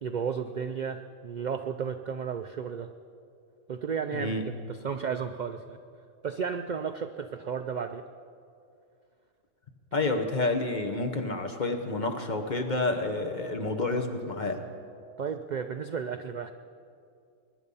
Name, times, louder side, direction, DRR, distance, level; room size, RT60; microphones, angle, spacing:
voice 1, 0.0-2.9 3.7-4.4 4.7-5.8 6.2-8.0 15.2-16.5, right 6 dB, 60° right, 8 dB, 0.5 m, -33 dB
voice 2, 4.1-4.4 9.9-14.6, left 2 dB, 40° left, 5 dB, 1.1 m, -29 dB
21.5 x 10.0 x 5.5 m, 2.4 s
omnidirectional pair, 1.3 m